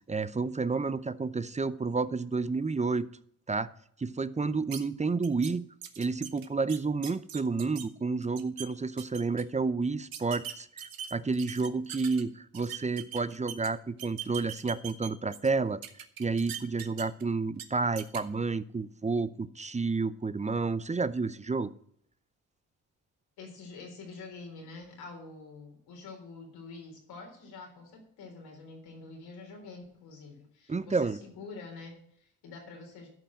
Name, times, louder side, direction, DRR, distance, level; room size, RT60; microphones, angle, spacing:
voice 1, 0.1-3.1 3.5-3.7 4.0-5.6 6.0-15.8 16.2-21.7 30.7-31.2, right 4 dB, 20° right, 0.6 m, -30 dB
sound 1, 4.7-4.8 5.2-5.5 5.8-7.8 8.2-8.7 9.0-9.4 10.1-12.2 12.5-13.7 14.0-15.5 15.8-17.2 17.5-17.6 18.0-18.2, right 10 dB, 70° right, 1.2 m, -41 dB
voice 2, 23.4-33.1, left 3 dB, 85° left, 3.8 m, -46 dB
13.0 x 5.5 x 6.2 m
supercardioid pair, 60°, 37 cm